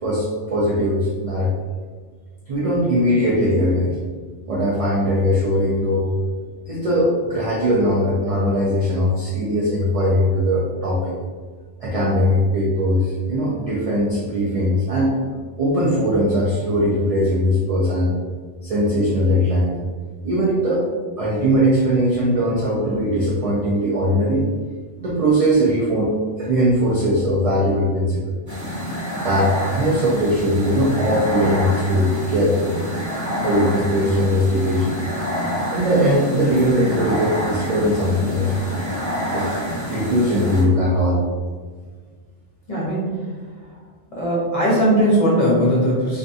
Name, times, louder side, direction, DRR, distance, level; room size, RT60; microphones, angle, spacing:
voice 1, 0.0-1.5 2.5-4.0 4.5-6.1 6.7-11.2 11.8-15.1 15.6-18.1 18.6-19.7 20.2-20.9 21.2-24.5 25.0-28.4 29.2-32.8 33.4-35.0 35.7-38.9 39.3-39.5 39.9-41.2, equal, 75° right, -6 dB, 0.3 m, -20 dB
sound 1, 28.5-40.6, equal, 20° right, 0.6 m, -27 dB
voice 2, 42.7-43.1 44.1-46.2, equal, 40° left, -6 dB, 0.7 m, -19 dB
2.5 x 2.3 x 2.6 m, 1.5 s
omnidirectional pair, 1.2 m